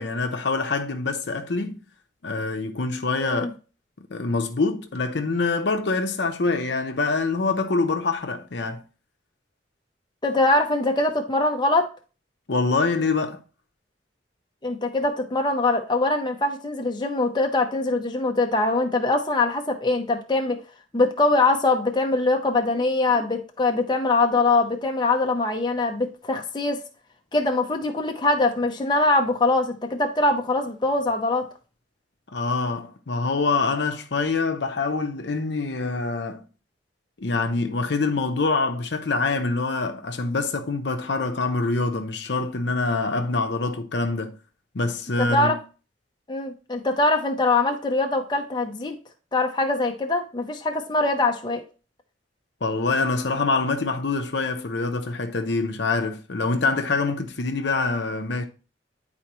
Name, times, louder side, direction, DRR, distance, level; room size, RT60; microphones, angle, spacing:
voice 1, 0.0-1.8 2.2-3.5 4.1-8.8 12.5-13.4 32.3-36.4 37.2-44.3 44.7-45.5 52.6-58.4, left 3 dB, 65° left, 0.7 m, -25 dB
voice 2, 10.2-11.9 14.6-20.6 20.9-26.8 27.3-31.5 45.2-45.6 46.3-49.0 49.3-51.6, left 2 dB, 25° left, 0.7 m, -23 dB
9.9 x 4.2 x 3.0 m
head